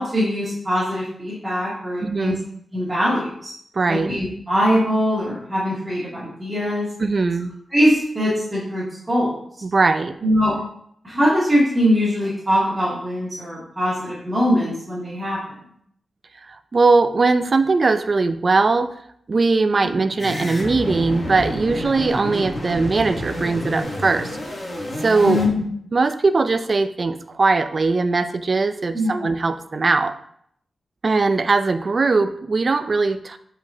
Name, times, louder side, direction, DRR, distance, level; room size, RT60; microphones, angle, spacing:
voice 1, 0.0-2.4 2.7-3.5 3.9-6.9 7.7-9.4 10.2-10.5 11.0-15.4 20.2-20.3 25.2-25.6 28.9-29.1, equal, 10° right, -10 dB, 2.1 m, -22 dB
voice 2, 2.0-2.4 3.7-4.1 7.0-7.5 9.6-10.1 16.5-18.9 19.3-24.4 25.0-25.4 25.9-30.1 31.0-33.4, right 3 dB, 35° right, 9 dB, 0.4 m, -20 dB
sound 1, 20.2-25.5, equal, 25° left, 1.3 m, -29 dB
8.3 x 5.0 x 2.8 m, 0.68 s
wide cardioid pair, 170°, 0 cm